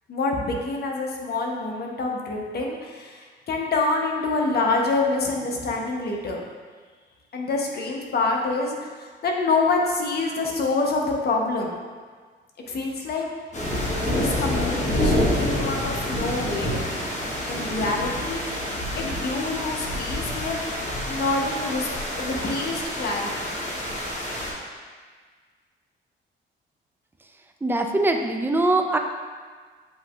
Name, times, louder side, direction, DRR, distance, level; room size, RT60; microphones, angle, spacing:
voice 1, 0.1-6.4 7.3-11.8 12.7-13.3 14.1-16.8 17.5-18.4 19.0-20.6 21.1-21.9 22.2-23.5, left 3 dB, 50° left, 0 dB, 0.8 m, -26 dB
sound 1, 13.5-24.5, left 1 dB, 35° left, 1.2 m, -27 dB
voice 2, 27.6-29.0, right 2 dB, 10° right, 4 dB, 0.4 m, -22 dB
7.9 x 2.7 x 2.3 m, 1.6 s
cardioid pair, 90°, 20 cm